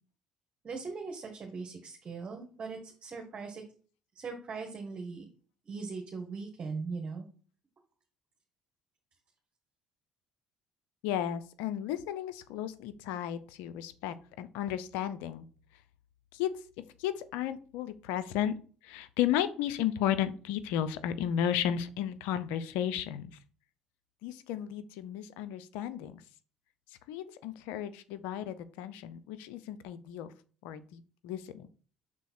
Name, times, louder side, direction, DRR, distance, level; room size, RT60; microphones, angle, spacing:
voice 1, 0.6-3.6 4.1-5.3 5.7-7.3, right 4 dB, 40° right, 2 dB, 1.5 m, -40 dB
voice 2, 11.0-15.5 16.3-16.5 17.0-18.6 18.8-23.3 24.2-26.2 27.1-30.3 30.6-31.7, left 10 dB, 80° left, 13 dB, 0.5 m, -34 dB
6.1 x 3.9 x 4.3 m, 0.39 s
hypercardioid pair, 70°, 3 cm